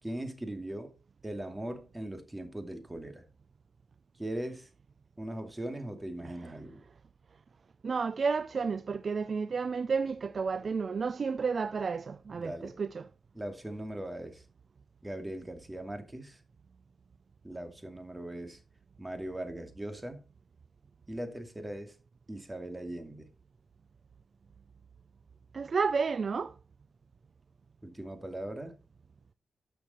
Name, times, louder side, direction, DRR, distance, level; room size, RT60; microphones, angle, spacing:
voice 1, 0.0-0.9 1.2-3.2 4.2-4.7 5.2-6.8 12.4-12.8 13.3-14.4 15.0-16.4 17.4-18.6 19.0-20.2 21.1-22.0 22.3-23.3 27.8-28.8, right 1 dB, 15° right, 2.5 m, -39 dB
voice 2, 7.8-12.5 12.8-13.0 25.5-26.5, right 5 dB, 55° right, 0.5 m, -31 dB
12.5 x 6.9 x 4.4 m
cardioid pair, 75°, 0 cm